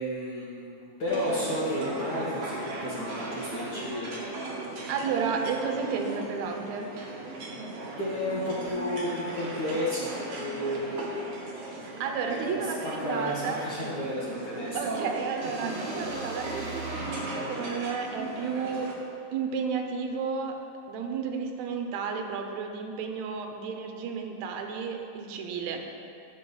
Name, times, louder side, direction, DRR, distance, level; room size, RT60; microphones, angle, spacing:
voice 1, 0.0-4.1 8.0-11.3 12.3-14.8, left 1 dB, 75° left, -7 dB, 0.9 m, -32 dB
sound 1, 1.1-18.9, right 2 dB, 65° right, 1.7 m, -37 dB
voice 2, 4.9-6.9 11.7-13.6 14.7-18.9 19.3-20.6 20.9-26.0, right 5 dB, 80° right, 3 dB, 2.0 m, -32 dB
sound 2, 15.4-19.3, right 1 dB, 35° right, 1.0 m, -39 dB
7.6 x 5.1 x 5.4 m, 2.5 s
omnidirectional pair, 3.4 m